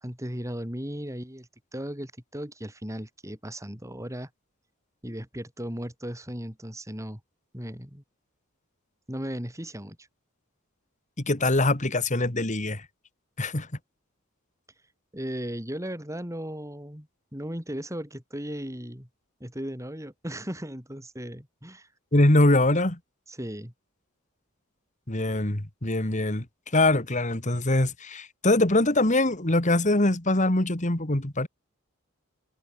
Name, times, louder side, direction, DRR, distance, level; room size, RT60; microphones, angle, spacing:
voice 1, 0.0-4.3 5.0-7.2 7.5-8.0 9.1-10.1 15.1-17.1 17.3-19.1 19.4-21.9 23.3-23.7, equal, 15° right, 5.3 m, -36 dB
voice 2, 11.2-12.8 13.4-13.7 22.1-23.0 25.1-26.5 26.7-31.5, left 2 dB, 35° left, 2.3 m, -23 dB
head